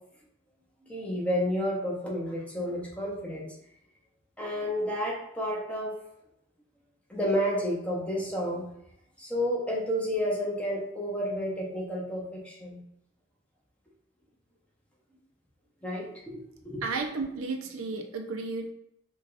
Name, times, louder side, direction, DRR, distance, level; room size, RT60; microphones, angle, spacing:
voice 1, 0.8-3.5 4.4-5.9 7.1-8.6 9.2-12.8 15.8-16.8, equal, 5° left, -4 dB, 0.7 m, -31 dB
voice 2, 16.8-18.7, right 3 dB, 80° right, 4 dB, 0.5 m, -33 dB
4.6 x 2.3 x 2.4 m, 0.75 s
head